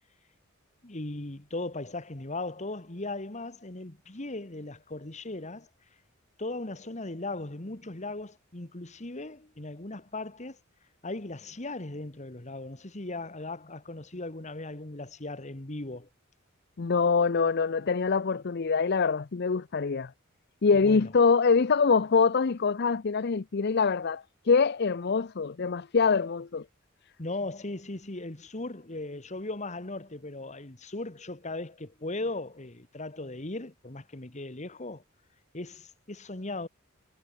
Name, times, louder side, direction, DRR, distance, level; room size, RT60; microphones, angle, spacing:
voice 1, 0.8-5.7 6.4-10.6 11.0-16.1 20.8-21.1 27.2-35.0 35.5-36.7, left 2 dB, 35° left, 1.7 m, -38 dB
voice 2, 16.8-20.1 20.6-26.6, left 5 dB, 55° left, 0.6 m, -24 dB
head